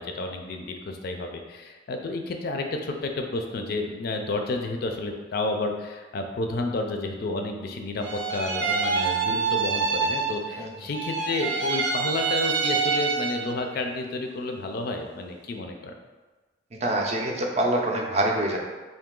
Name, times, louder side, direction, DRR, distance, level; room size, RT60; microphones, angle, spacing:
voice 1, 0.0-15.9, left 2 dB, 55° left, 4 dB, 0.4 m, -31 dB
sound 1, 8.0-10.6 10.9-13.6, right 5 dB, 80° right, 0.7 m, -26 dB
voice 2, 16.8-18.6, right 1 dB, 35° right, 0 dB, 0.5 m, -25 dB
3.7 x 2.6 x 3.7 m, 1.3 s
head